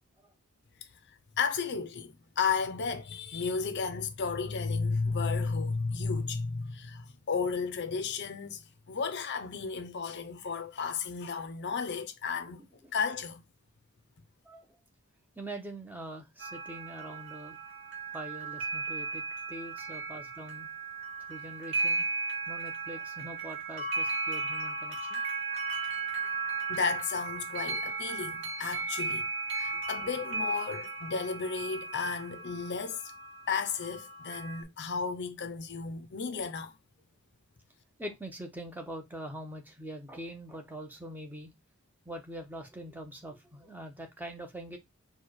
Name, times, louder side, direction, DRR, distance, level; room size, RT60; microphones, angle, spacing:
voice 1, 1.4-8.6 8.9-12.6 12.9-13.4 26.7-29.3 29.5-33.0 33.5-36.8, left 5 dB, 50° left, 0.6 m, -33 dB
voice 2, 14.4-14.8 15.4-17.6 18.1-19.2 19.5-20.7 21.3-22.1 22.5-25.2 26.2-26.3 29.7-30.1 38.0-41.5 42.0-44.8, right 1 dB, 10° right, 0.7 m, -43 dB
sound 1, 16.4-34.6, right 4 dB, 55° right, 1.4 m, -36 dB
4.3 x 2.3 x 4.6 m
head